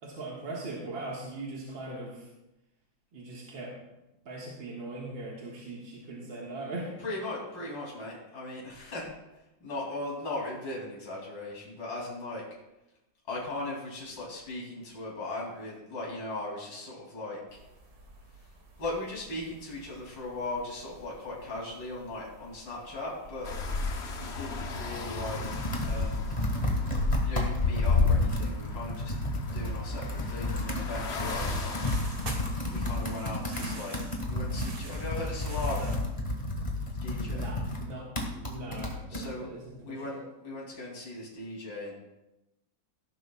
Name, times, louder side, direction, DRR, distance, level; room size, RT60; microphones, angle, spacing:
voice 1, 0.0-2.3 3.1-3.7 4.3-7.0 37.3-37.6 37.9-39.6 39.9-40.2, right 2 dB, 75° right, -4 dB, 2.5 m, -40 dB
voice 2, 7.0-9.1 9.6-12.4 13.3-17.4 18.8-23.5 24.2-25.5 25.8-26.4 27.3-29.1 29.5-31.8 32.7-34.0 34.3-36.0 37.0-37.5 39.1-39.5 39.8-41.9, left 2 dB, 65° left, -4 dB, 3.7 m, -38 dB
sound 1, 17.5-36.0, right 3 dB, 50° right, 1.9 m, -50 dB
sound 2, 23.4-33.0, left 4 dB, 45° left, 0.9 m, -32 dB
Computer keyboard, 24.7-39.3, left 1 dB, 20° left, 1.9 m, -32 dB
17.5 x 11.0 x 2.4 m, 0.95 s
omnidirectional pair, 2.2 m